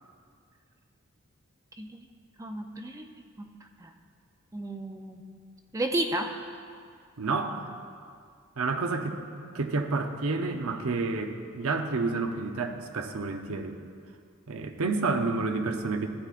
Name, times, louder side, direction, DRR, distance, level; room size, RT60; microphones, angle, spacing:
voice 1, 2.4-3.1 3.4-3.5 3.8-3.9 4.5-5.2 5.7-6.3, right 1 dB, 15° right, 5 dB, 0.4 m, -32 dB
voice 2, 7.2-7.7 8.6-9.2 9.5-13.8 14.5-16.1, right 3 dB, 80° right, 5 dB, 0.7 m, -29 dB
14.0 x 9.6 x 2.5 m, 2.2 s
head